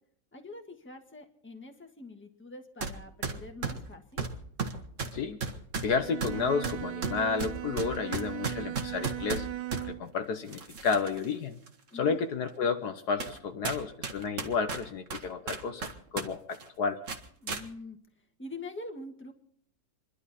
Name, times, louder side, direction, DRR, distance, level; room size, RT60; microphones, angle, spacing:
voice 1, 0.3-4.3 11.9-12.2 17.4-18.0 18.4-19.3, left 2 dB, 5° left, 3 dB, 1.5 m, -44 dB
sound 1, 2.8-3.0 3.2-9.9 10.5-11.2 11.7-11.8 12.5-12.6 13.2-13.4 13.6-16.3 16.5-16.7 17.1-17.6, right 4 dB, 45° right, 1.7 m, -34 dB
voice 2, 5.8-9.5 9.8-11.6 11.9-17.0, left 5 dB, 65° left, 7 dB, 1.5 m, -31 dB
Bowed string instrument, 5.9-10.1, right 15 dB, 75° right, 1.4 m, -38 dB
27.5 x 11.5 x 4.2 m, 0.65 s
omnidirectional pair, 2.0 m